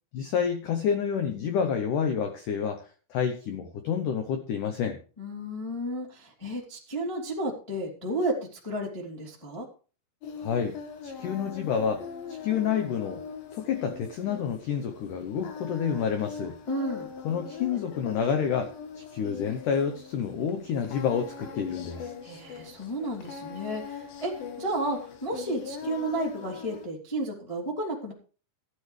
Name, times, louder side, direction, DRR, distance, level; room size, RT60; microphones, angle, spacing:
voice 1, 0.1-2.8 3.1-5.0 10.4-10.8 11.0-13.2 13.5-16.6 17.2-22.1, left 7 dB, 85° left, 7 dB, 1.8 m, -29 dB
voice 2, 5.2-8.4 8.6-9.7 16.7-17.1 22.2-28.1, right 1 dB, 10° left, -4 dB, 1.8 m, -32 dB
Singing, 10.2-26.9, left 6 dB, 65° left, 2.9 m, -41 dB
14.5 x 11.5 x 3.3 m, 0.36 s
omnidirectional pair, 5.1 m